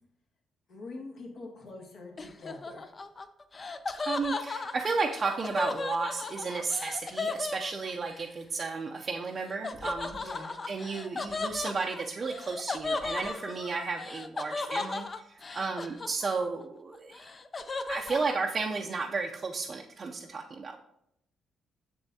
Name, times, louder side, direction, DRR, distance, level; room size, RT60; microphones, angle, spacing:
voice 1, 0.7-2.9 10.2-10.5 15.6-15.7, left 2 dB, 65° left, -1 dB, 1.9 m, -44 dB
Laughter, 2.2-8.2 9.6-16.6 16.9-18.3, left 3 dB, 35° left, 0.5 m, -36 dB
voice 2, 3.9-10.3 10.7-17.3 17.9-20.8, right 4 dB, 40° right, 1 dB, 0.5 m, -33 dB
7.0 x 6.9 x 2.7 m, 0.79 s
cardioid pair, 85°, 0 cm